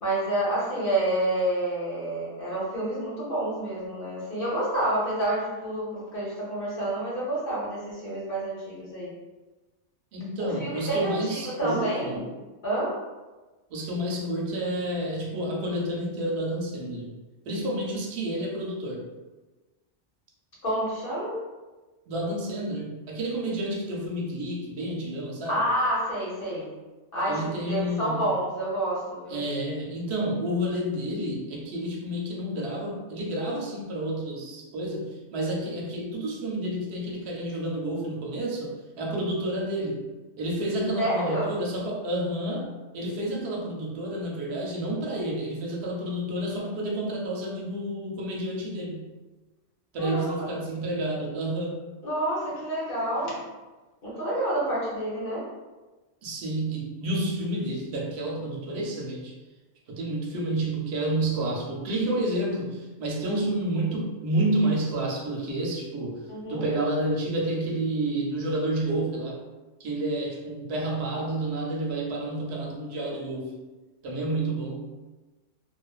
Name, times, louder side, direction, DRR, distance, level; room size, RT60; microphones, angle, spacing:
voice 1, 0.0-9.1 10.4-12.2 12.6-13.0 20.6-21.4 25.5-26.7 27.1-29.4 41.0-41.5 50.0-50.5 52.0-53.5 54.0-55.4 66.3-66.6, right 1 dB, 50° left, -6 dB, 0.9 m, -28 dB
voice 2, 10.1-12.2 13.7-17.1 17.5-19.1 22.1-25.6 27.3-28.2 29.3-40.1 40.4-49.1 49.9-51.8 56.2-59.3 59.9-66.2 66.5-69.4 69.8-73.5 74.0-74.9, right 1 dB, 65° right, -2 dB, 0.8 m, -30 dB
2.4 x 2.3 x 2.3 m, 1.2 s
omnidirectional pair, 1.3 m